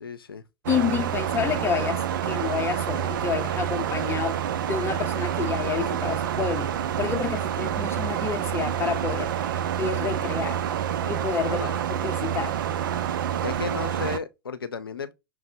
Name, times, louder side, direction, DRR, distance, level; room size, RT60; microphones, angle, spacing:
voice 1, 0.0-0.4 11.5-11.7 13.4-15.1, left 5 dB, 85° left, 0.4 m, -33 dB
voice 2, 0.7-4.4 4.7-6.7 7.0-10.6 11.0-11.6 11.9-12.6, left 7 dB, 20° left, 0.7 m, -29 dB
sound 1, 0.7-14.2, right 9 dB, 65° right, 0.4 m, -28 dB
5.8 x 2.0 x 2.7 m
figure-of-eight pair, 90°, 12 cm